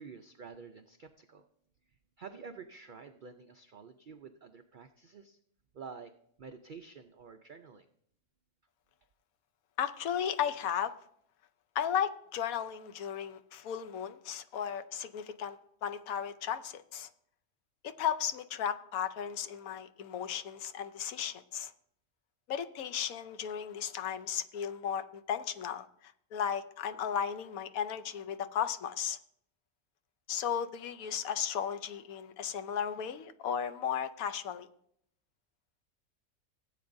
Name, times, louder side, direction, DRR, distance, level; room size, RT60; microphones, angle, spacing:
voice 1, 0.0-1.4 2.2-5.4 5.7-6.1 6.4-7.9, right 5 dB, 70° right, 7 dB, 0.4 m, -49 dB
voice 2, 9.8-10.9 11.7-17.1 17.8-21.7 22.5-29.2 30.3-34.7, left 8 dB, 75° left, 11 dB, 1.1 m, -35 dB
16.5 x 8.3 x 2.6 m, 0.69 s
omnidirectional pair, 1.5 m